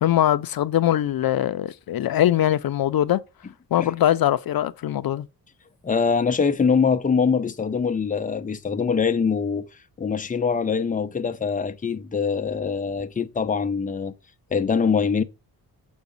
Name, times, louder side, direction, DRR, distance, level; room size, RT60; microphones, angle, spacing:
voice 1, 0.0-3.2 3.7-5.3, left 12 dB, 70° left, 0.5 m, -22 dB
voice 2, 5.8-9.7 10.0-14.1 14.5-15.2, left 5 dB, 20° left, 0.6 m, -23 dB
7.2 x 4.9 x 5.3 m
wide cardioid pair, 160°, 37 cm